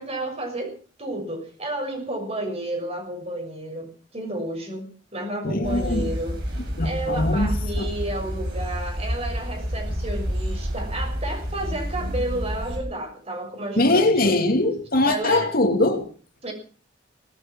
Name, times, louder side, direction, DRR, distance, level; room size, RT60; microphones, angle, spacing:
voice 1, 0.0-6.3 6.8-14.3 15.0-15.5 16.4-16.5, right 1 dB, 35° right, 6.7 m, -31 dB
voice 2, 5.4-6.1 6.8-7.5 7.8-7.9 13.8-16.1, left 2 dB, 55° left, 2.2 m, -21 dB
sound 1, 5.6-12.8, equal, 60° right, 7.5 m, -29 dB
18.0 x 13.0 x 6.1 m
head